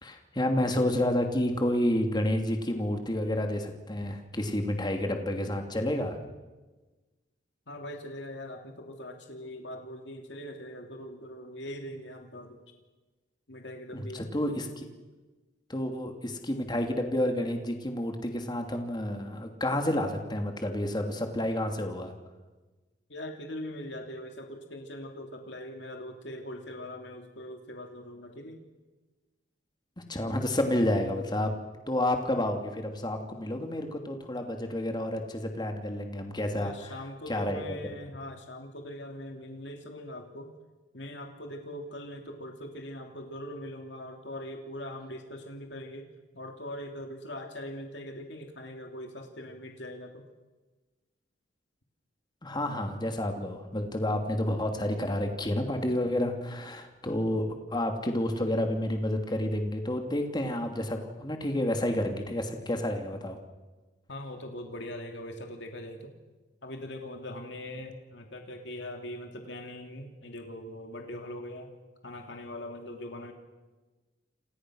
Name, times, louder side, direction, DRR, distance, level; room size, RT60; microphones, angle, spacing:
voice 1, 0.0-6.2 13.9-14.9 15.7-22.1 30.0-31.5 31.9-36.9 37.3-37.8 52.4-63.4, left 1 dB, 25° left, 4 dB, 2.8 m, -30 dB
voice 2, 7.7-12.6 13.5-14.3 23.1-28.6 36.5-40.5 40.9-46.1 46.3-50.2 64.1-66.2 66.6-71.7 72.0-73.3, left 1 dB, 70° left, 4 dB, 2.8 m, -41 dB
29.0 x 27.5 x 6.4 m, 1.2 s
head